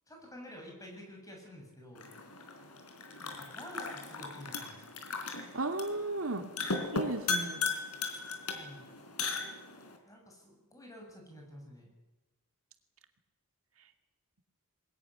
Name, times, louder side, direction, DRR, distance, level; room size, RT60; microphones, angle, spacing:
voice 1, 0.1-2.1 3.2-4.8 8.5-8.8 10.0-11.9, equal, 15° left, 1 dB, 7.6 m, -50 dB
sound 1, 1.9-10.0, left 4 dB, 80° left, 3.9 m, -37 dB
voice 2, 5.5-6.5 6.9-7.7, right 2 dB, 65° right, 6 dB, 2.6 m, -34 dB
22.0 x 21.0 x 10.0 m, 1.0 s
head